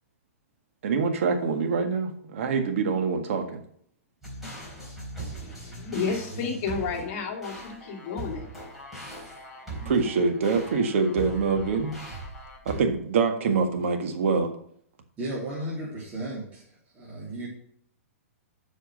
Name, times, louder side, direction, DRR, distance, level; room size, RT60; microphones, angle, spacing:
voice 1, 0.8-3.6 9.9-12.0 12.7-14.5, right 5 dB, 60° right, 5 dB, 1.8 m, -25 dB
sound 1, 4.2-12.8, right 2 dB, ahead, 4.0 m, -40 dB
voice 2, 5.3-8.5 9.8-9.9, left 5 dB, 40° left, 1 dB, 2.4 m, -32 dB
voice 3, 15.2-16.6 16.9-17.5, right 1 dB, 20° right, -7 dB, 3.3 m, -34 dB
7.9 x 6.4 x 6.5 m, 0.65 s
hypercardioid pair, 155°, 8 cm